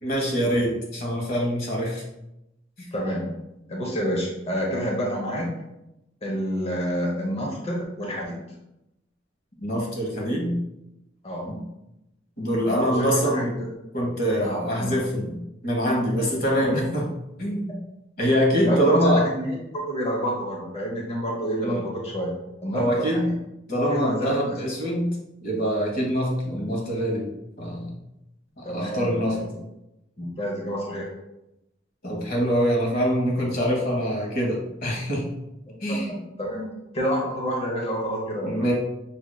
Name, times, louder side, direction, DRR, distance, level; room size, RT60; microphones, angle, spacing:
voice 1, 0.0-2.0 9.6-10.6 11.4-11.6 12.4-13.5 13.9-15.4 15.6-17.0 17.4-17.7 18.2-19.3 21.6-21.8 22.7-23.3 23.7-25.1 25.4-27.3 27.6-27.9 28.6-29.4 32.0-35.3 35.8-36.1 38.4-38.7, equal, 55° left, -1 dB, 1.2 m, -24 dB
voice 2, 2.9-3.3 3.7-5.5 6.2-8.4 11.2-11.5 12.7-13.7 14.4-15.0 16.6-16.8 18.6-22.3 22.6-23.3 23.9-24.3 28.6-29.6 30.2-31.1 35.7-36.7 36.9-38.6, equal, 35° left, -1 dB, 0.8 m, -29 dB
6.1 x 2.7 x 2.3 m, 0.89 s
head